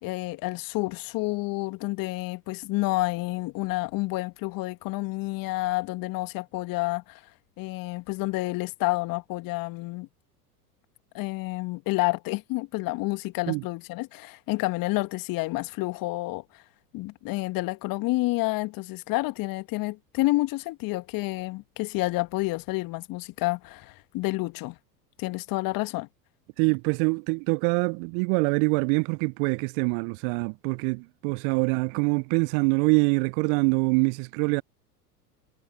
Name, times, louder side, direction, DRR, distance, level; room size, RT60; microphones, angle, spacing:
voice 1, 0.0-7.2 7.6-10.1 11.1-16.4 16.9-24.8 25.2-26.1, left 21 dB, 45° left, 1.9 m, -29 dB
voice 2, 26.6-34.6, right 36 dB, 35° right, 0.4 m, -24 dB
figure-of-eight pair, 85°, 48 cm